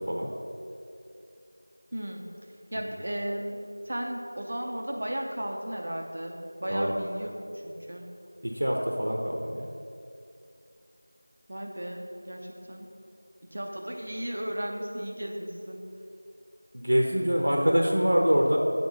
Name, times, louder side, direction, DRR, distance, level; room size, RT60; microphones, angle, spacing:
voice 1, 1.9-2.3 2.7-3.6 3.9-7.3 7.6-8.0 11.5-12.9 13.4-15.9, right 1 dB, 30° right, 1 dB, 0.6 m, -35 dB
voice 2, 8.4-9.7 16.7-18.6, equal, 80° right, 0 dB, 1.0 m, -25 dB
8.1 x 4.5 x 6.7 m, 2.6 s
figure-of-eight pair, 180°, 0 cm